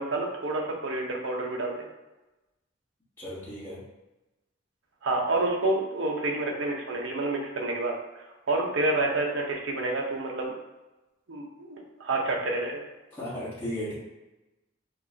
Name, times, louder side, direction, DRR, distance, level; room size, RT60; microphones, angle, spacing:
voice 1, 0.0-1.9 5.0-10.5 11.3-12.8, right 2 dB, 80° right, 0 dB, 0.9 m, -29 dB
voice 2, 3.2-3.8 13.1-13.9, equal, 15° left, -11 dB, 1.3 m, -35 dB
5.4 x 3.0 x 2.8 m, 1.0 s
head